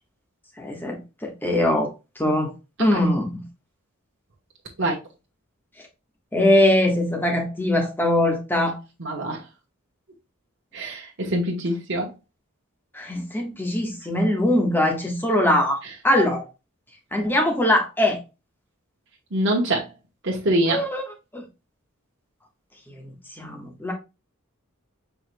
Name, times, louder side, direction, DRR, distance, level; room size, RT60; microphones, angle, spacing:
voice 1, 0.6-1.9 2.2-2.5 2.8-3.4 6.3-8.8 12.9-15.8 16.0-16.4 17.1-18.2 20.7-21.0 21.3-21.4 22.9-23.1 23.4-23.9, left 1 dB, 10° left, 1.3 m, -21 dB
voice 2, 9.0-9.4 10.7-12.1 19.3-19.9 20.2-20.8, right 1 dB, 55° right, 1.1 m, -24 dB
4.8 x 4.6 x 2.2 m
head